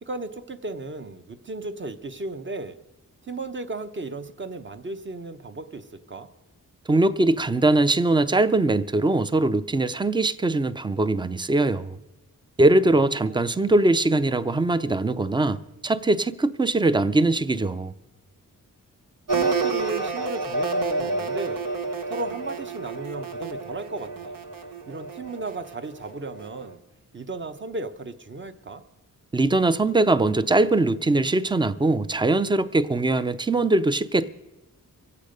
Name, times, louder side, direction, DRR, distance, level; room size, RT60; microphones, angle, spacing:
voice 1, 0.0-2.8 3.2-6.3 13.2-13.5 19.3-21.6 22.1-24.3 24.9-26.8 27.1-28.8, right 2 dB, 35° right, 0.9 m, -35 dB
voice 2, 6.9-12.0 12.6-17.9 29.3-34.3, right 2 dB, 15° right, 0.4 m, -21 dB
sound 1, 19.3-26.7, right 3 dB, 75° right, 1.3 m, -29 dB
24.5 x 8.4 x 5.2 m
wide cardioid pair, 120°, 34 cm